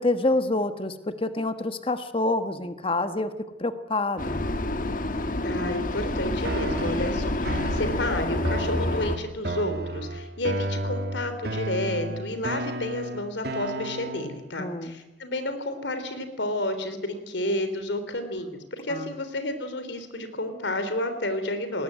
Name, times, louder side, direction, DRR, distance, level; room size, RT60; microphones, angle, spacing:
voice 1, 0.0-3.3 3.6-4.4 14.6-15.0 18.9-19.1, left 2 dB, 30° left, 10 dB, 1.3 m, -27 dB
Vehicle, 4.2-9.2, left 1 dB, 45° left, 1.4 m, -28 dB
voice 2, 5.4-21.8, left 1 dB, 75° left, 9 dB, 3.4 m, -31 dB
sound 1, 6.4-14.4, right 1 dB, 60° right, 1.5 m, -32 dB
21.0 x 19.0 x 9.2 m, 1.0 s
head